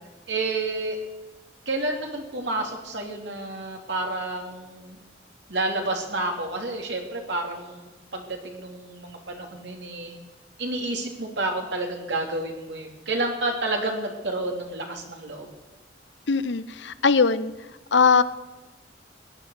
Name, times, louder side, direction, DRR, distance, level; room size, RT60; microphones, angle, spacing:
voice 1, 0.3-1.0 1.7-5.0 5.5-10.1 10.6-15.5, right 2 dB, 70° right, 2 dB, 2.9 m, -30 dB
voice 2, 16.3-17.5 17.9-18.2, left 5 dB, 75° left, 14 dB, 0.7 m, -20 dB
17.5 x 10.0 x 6.6 m, 1.2 s
head